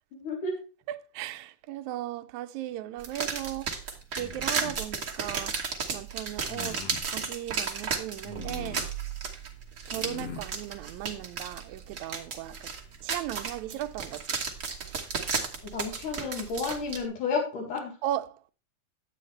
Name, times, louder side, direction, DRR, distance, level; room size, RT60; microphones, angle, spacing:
voice 1, 0.1-0.6 15.6-18.0, left 4 dB, 80° left, 3.5 m, -32 dB
voice 2, 0.9-3.8 4.2-5.6 5.9-8.9 9.8-12.7 13.0-14.4 14.8-15.0 18.0-18.5, right 13 dB, 80° right, 1.8 m, -37 dB
sound 1, 3.0-17.0, right 5 dB, 55° right, 0.8 m, -34 dB
sound 2, 4.1-4.9 6.4-7.1 8.2-9.0 9.9-10.5, left 4 dB, 55° left, 2.1 m, -41 dB
11.0 x 8.6 x 3.2 m
omnidirectional pair, 3.6 m